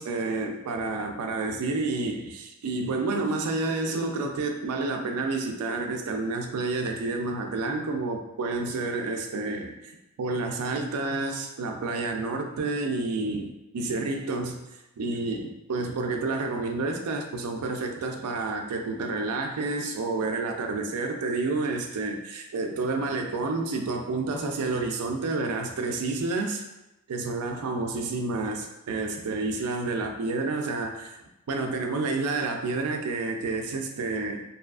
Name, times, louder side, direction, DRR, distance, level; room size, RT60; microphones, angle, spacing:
voice 1, 0.0-9.9 10.2-14.6 15.0-26.6 27.1-31.2 31.5-34.4, right 3 dB, 80° right, 4 dB, 0.4 m, -29 dB
2.7 x 2.4 x 2.3 m, 0.95 s
head